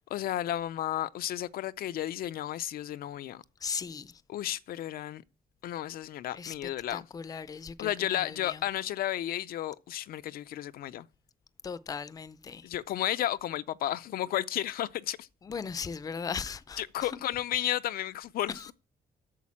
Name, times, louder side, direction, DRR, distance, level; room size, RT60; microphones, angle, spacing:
voice 1, 0.1-3.4 4.3-5.2 5.6-7.1 7.8-11.1 12.6-15.3 16.8-18.7, left 12 dB, 75° left, 0.5 m, -33 dB
voice 2, 3.6-4.2 6.3-8.6 11.6-12.7 15.4-17.1 18.5-18.7, left 6 dB, 25° left, 0.5 m, -38 dB
8.5 x 7.0 x 7.3 m
cardioid pair, 160°, 16 cm